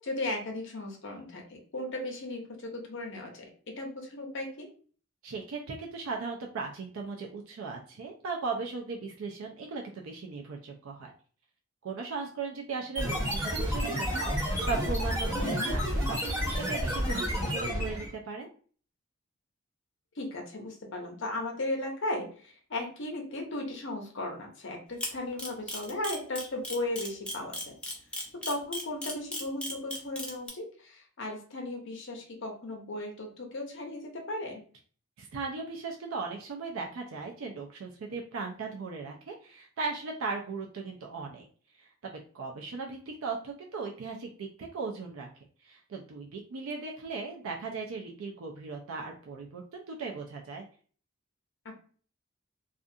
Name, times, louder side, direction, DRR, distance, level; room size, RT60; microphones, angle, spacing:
voice 1, 0.0-4.7 15.3-15.7 20.2-27.7 28.5-34.6 51.6-51.7, left 2 dB, 65° left, 2 dB, 0.8 m, -36 dB
voice 2, 5.2-11.1 11.8-18.5 35.2-41.5 41.8-41.9 42.3-45.3 45.6-50.6, right 4 dB, 85° right, 1 dB, 0.4 m, -37 dB
sound 1, 12.9-18.1, equal, 15° right, 1.4 m, -30 dB
Camera, 25.0-30.5, left 1 dB, 5° left, 0.5 m, -35 dB
2.4 x 2.4 x 2.6 m, 0.43 s
head